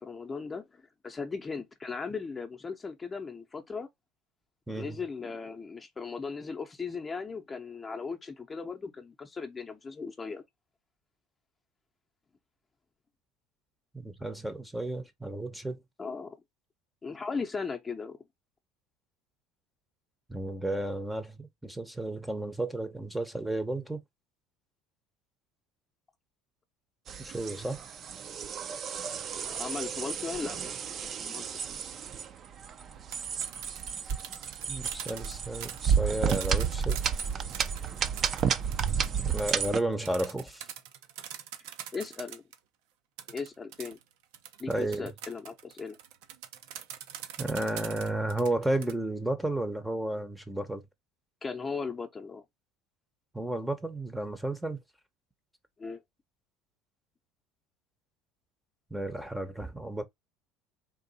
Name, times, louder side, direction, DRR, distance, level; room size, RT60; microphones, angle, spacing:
voice 1, 0.0-3.9 4.8-10.4 16.0-16.4 17.0-18.2 29.4-31.4 41.9-42.4 43.3-44.0 44.6-46.0 51.4-52.4 55.8-56.0, left 5 dB, 20° left, 0.8 m, -37 dB
voice 2, 4.7-5.0 13.9-15.8 20.3-24.0 27.2-27.8 34.7-37.0 39.2-40.7 44.7-45.1 47.4-50.8 53.3-54.8 58.9-60.0, right 1 dB, 5° right, 0.8 m, -32 dB
sound 1, 27.1-39.8, right 7 dB, 40° right, 0.6 m, -32 dB
sound 2, 33.0-42.6 43.2-48.9, right 10 dB, 80° right, 0.8 m, -43 dB
3.8 x 2.6 x 4.0 m
supercardioid pair, 110°, 0 cm